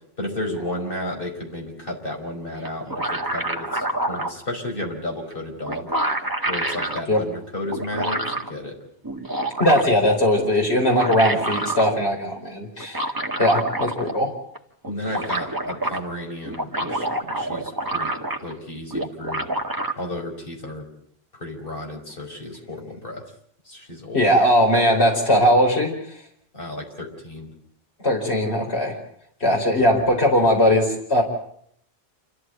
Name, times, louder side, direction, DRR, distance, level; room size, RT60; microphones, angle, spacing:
voice 1, 0.2-5.9 6.5-8.8 11.3-11.4 14.9-18.1 18.4-19.5 20.0-20.9 21.3-23.2 23.6-24.3 26.5-27.5 29.4-29.9, left 1 dB, 55° left, 1 dB, 5.5 m, -33 dB
sound 1, 2.6-4.3 5.3-5.4 5.7-7.0 7.7-8.5 9.0-10.1 10.7-11.9 12.8-14.3 14.5-14.6 14.8-16.0 16.4-18.6 18.9-19.9, right 1 dB, 20° right, 1.9 m, -27 dB
voice 2, 9.6-13.1 13.4-14.3 24.1-25.9 28.0-28.9 29.4-31.2, equal, 80° left, 1 dB, 4.7 m, -19 dB
28.0 x 14.5 x 9.2 m, 0.70 s
omnidirectional pair, 1.1 m